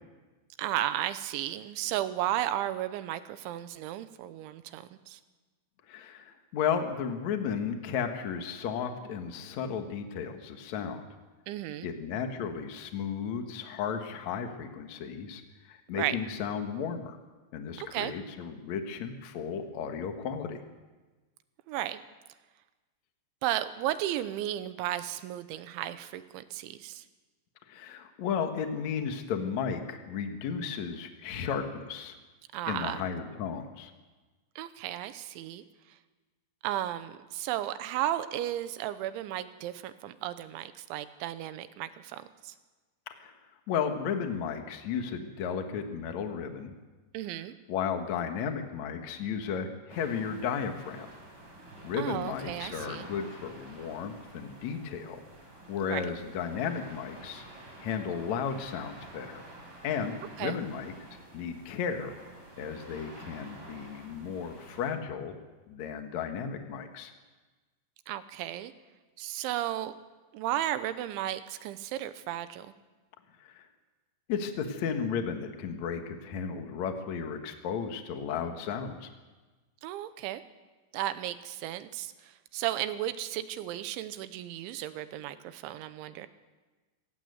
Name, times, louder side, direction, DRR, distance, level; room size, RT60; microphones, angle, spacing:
voice 1, 0.6-5.2 11.5-11.9 15.9-16.2 17.8-18.1 21.7-22.0 23.4-27.0 32.5-33.0 34.6-35.6 36.6-42.5 47.1-47.5 52.0-53.1 55.9-56.1 60.4-60.6 68.1-68.7 69.2-70.0 70.3-72.7 79.8-80.4 80.9-86.3, right 13 dB, 80° right, 12 dB, 3.0 m, -34 dB
voice 2, 5.9-11.0 11.8-15.4 15.7-17.2 17.5-20.6 27.7-32.2 32.7-33.9 43.1-43.3 43.7-46.7 47.7-51.1 51.8-55.2 55.7-57.4 57.8-59.4 59.8-60.9 61.3-62.1 62.6-65.3 65.7-67.1 73.4-73.6 74.3-79.1, left 7 dB, 80° left, 6 dB, 1.6 m, -34 dB
sound 1, 49.9-64.9, right 1 dB, 25° right, 5.3 m, -49 dB
26.0 x 15.5 x 8.0 m, 1.3 s
omnidirectional pair, 5.9 m